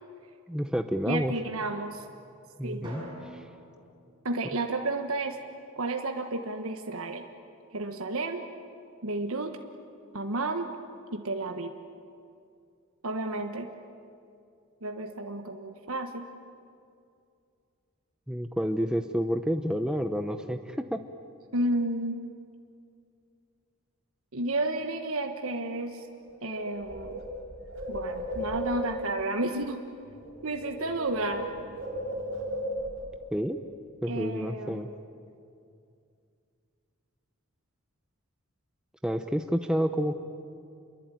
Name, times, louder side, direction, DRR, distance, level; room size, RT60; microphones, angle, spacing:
voice 1, 0.5-1.3 2.6-3.0 3.3-3.4 18.3-21.0 33.3-33.6 34.0-34.9 39.0-40.2, equal, 5° right, 6 dB, 0.7 m, -29 dB
voice 2, 1.0-2.0 2.6-2.9 4.2-5.4 5.7-7.2 7.7-8.4 9.0-9.6 10.1-10.7 11.1-11.7 13.0-13.7 14.8-16.3 21.5-22.2 24.3-26.1 26.4-27.2 27.9-29.8 30.4-31.6 34.1-34.9, right 2 dB, 75° right, 4 dB, 1.4 m, -31 dB
Drum, 2.8-5.1, equal, 20° right, 7.2 m, -46 dB
Bird, 26.1-26.2 26.5-29.0 30.1-30.3 30.6-33.0, equal, 55° right, 6.7 m, -35 dB
28.0 x 22.5 x 9.3 m, 2.4 s
head